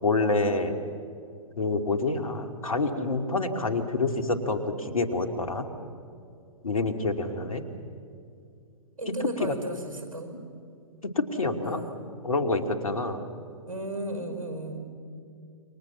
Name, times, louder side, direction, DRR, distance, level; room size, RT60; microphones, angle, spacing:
voice 1, 0.0-0.8 1.6-5.6 6.6-7.6 9.4-9.5 11.0-11.8 12.2-13.2, left 3 dB, 75° left, 7 dB, 2.6 m, -27 dB
voice 2, 9.0-10.4 11.6-12.0 13.7-14.8, right 1 dB, 75° right, 5 dB, 6.0 m, -34 dB
28.5 x 25.0 x 7.4 m, 2.5 s
figure-of-eight pair, 120°, 18 cm